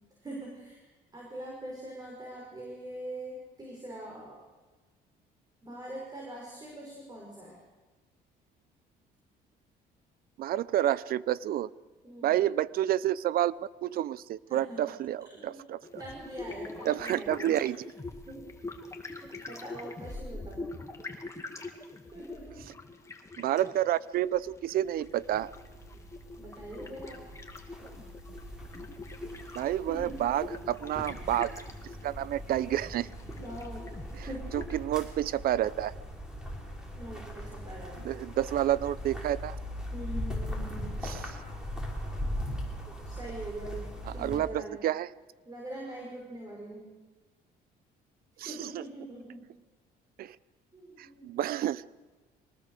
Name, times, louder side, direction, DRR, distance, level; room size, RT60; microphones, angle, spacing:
voice 1, 0.2-4.3 5.6-7.6 12.0-12.5 14.5-14.9 15.3-15.6 16.0-17.6 18.3-18.4 18.9-20.8 22.1-22.6 26.4-27.2 29.9-30.2 33.3-33.9 34.3-34.5 36.9-38.1 39.9-41.0 43.0-44.8 45.5-46.9 48.3-49.5 50.7-51.5, right 1 dB, 25° right, -2 dB, 6.0 m, -43 dB
voice 2, 10.4-11.7 12.2-15.8 16.9-17.9 23.4-25.5 29.5-31.5 32.0-33.1 34.2-34.3 34.5-35.9 38.0-39.6 41.0-41.2 44.2-45.1 48.4-48.8 50.2-50.4 51.0-51.8, right 12 dB, 60° right, 19 dB, 0.7 m, -29 dB
sound 1, 15.8-34.9, left 2 dB, 15° left, 2.3 m, -44 dB
sound 2, 24.7-44.4, equal, 5° right, 5.3 m, -40 dB
23.0 x 19.5 x 6.7 m, 1.2 s
cardioid pair, 110°, 17 cm